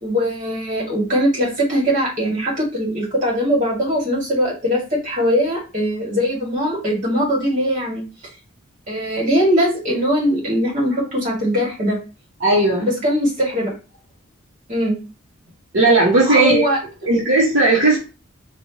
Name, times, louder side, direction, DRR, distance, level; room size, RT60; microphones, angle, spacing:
voice 1, 0.0-8.0 8.9-12.0 12.8-13.7 14.7-15.0 16.3-16.8, equal, 35° right, -3 dB, 1.7 m, -20 dB
voice 2, 12.4-12.9 15.7-16.6 17.1-18.0, right 2 dB, 60° right, -5 dB, 1.1 m, -15 dB
4.3 x 2.5 x 2.8 m, 0.31 s
head